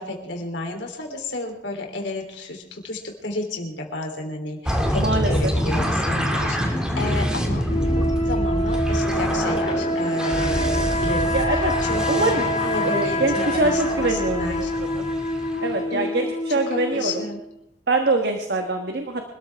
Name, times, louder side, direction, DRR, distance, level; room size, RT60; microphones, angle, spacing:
voice 1, 0.0-7.7 8.2-14.7 15.9-16.3 16.7-17.4, left 2 dB, 70° left, 2 dB, 3.4 m, -32 dB
sound 1, 4.6-15.8, equal, 5° right, 2.3 m, -26 dB
voice 2, 4.9-5.5 11.3-11.7 12.1-12.5 12.9-14.7 14.9-15.0 15.6-17.2 17.9-19.2, right 2 dB, 60° right, 4 dB, 1.4 m, -24 dB
sound 2, 7.7-17.4, equal, 40° left, 2.5 m, -26 dB
25.5 x 13.5 x 3.5 m, 0.81 s
head